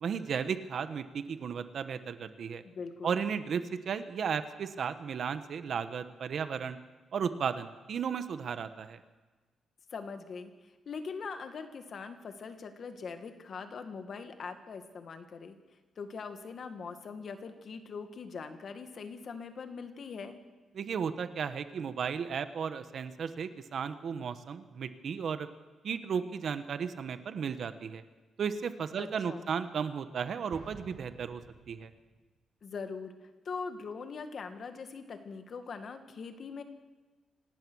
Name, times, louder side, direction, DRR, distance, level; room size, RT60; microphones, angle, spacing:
voice 1, 0.0-2.6 3.0-6.8 7.1-9.0 20.7-25.5 25.8-28.0 28.4-31.4 31.7-31.9, right 6 dB, 55° right, 11 dB, 1.2 m, -34 dB
voice 2, 2.6-3.2 9.9-15.6 16.0-20.4 29.0-29.5 32.6-36.6, left 5 dB, 45° left, 7 dB, 1.9 m, -42 dB
Explosion, 30.5-32.1, right 5 dB, 75° right, 5.6 m, -51 dB
26.0 x 18.0 x 6.3 m, 1.3 s
wide cardioid pair, 150°, 0 cm